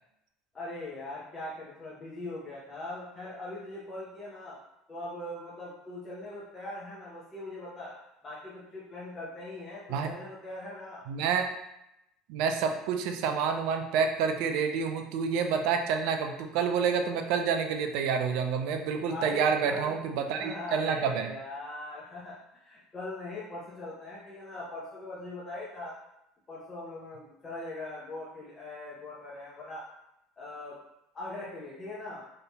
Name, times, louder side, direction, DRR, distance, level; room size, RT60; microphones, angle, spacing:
voice 1, 0.5-4.6 4.9-8.0 8.2-11.0 19.0-20.0 20.3-25.9 26.5-29.9 30.4-30.8 31.1-32.2, left 2 dB, 30° left, -7 dB, 0.7 m, -41 dB
voice 2, 11.1-11.5 12.3-21.3, right 6 dB, 65° right, 5 dB, 0.3 m, -28 dB
2.7 x 2.7 x 2.2 m, 0.85 s
hypercardioid pair, 75°, 0 cm